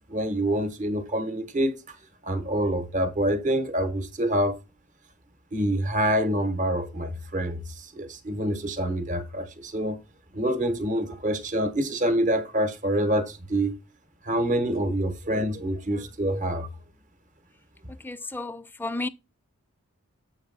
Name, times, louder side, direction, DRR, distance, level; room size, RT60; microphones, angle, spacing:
voice 1, 0.1-1.8 2.2-4.6 5.5-10.0 10.3-13.7 14.3-16.7, right 1 dB, 35° right, 1.0 m, -26 dB
voice 2, 18.0-19.1, left 2 dB, 10° left, 0.3 m, -32 dB
8.1 x 5.2 x 3.9 m
head